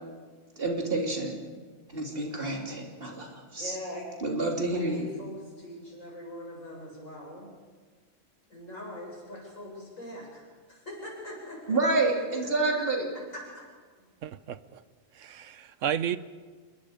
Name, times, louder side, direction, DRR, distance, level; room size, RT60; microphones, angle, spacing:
voice 1, 0.6-1.4 1.9-3.8 4.2-5.1 11.7-13.1, right 2 dB, 45° right, 3.3 m, -28 dB
voice 2, 3.6-4.3 4.7-7.5 8.5-10.4 10.7-11.8 12.7-12.8 13.3-13.6, left 1 dB, 85° left, 8.0 m, -42 dB
voice 3, 14.2-14.8 15.2-16.2, right 9 dB, 75° right, 1.2 m, -32 dB
27.5 x 21.5 x 5.1 m
omnidirectional pair, 1.3 m